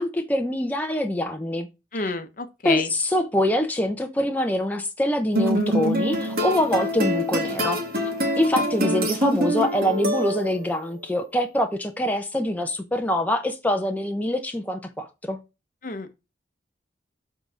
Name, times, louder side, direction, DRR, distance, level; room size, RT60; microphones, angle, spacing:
voice 1, 0.0-1.7 1.9-2.1 2.6-7.8 8.4-15.4, left 1 dB, 10° left, 0.7 m, -24 dB
voice 2, 1.9-2.9 15.8-16.1, left 3 dB, 45° left, 0.9 m, -29 dB
sound 1, 5.3-10.7, equal, 55° right, 1.8 m, -25 dB
7.1 x 3.9 x 4.9 m
head